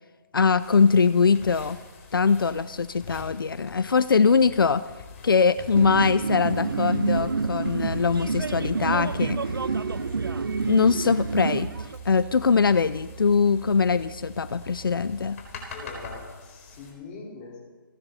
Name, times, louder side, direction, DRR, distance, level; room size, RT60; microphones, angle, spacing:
voice 1, 0.3-1.8 2.1-4.8 5.2-9.4 10.7-11.7 12.1-15.4, left 5 dB, 80° left, 15 dB, 0.6 m, -22 dB
sound 1, 0.6-16.9, left 4 dB, 40° left, 4.1 m, -45 dB
sound 2, 5.7-12.0, right 4 dB, 80° right, 1.0 m, -28 dB
sound 3, 7.6-15.3, right 5 dB, 55° right, 1.2 m, -42 dB
voice 2, 15.7-17.6, left 3 dB, 25° left, -3 dB, 4.4 m, -42 dB
30.0 x 10.0 x 4.2 m, 1.4 s
hypercardioid pair, 155°, 11 cm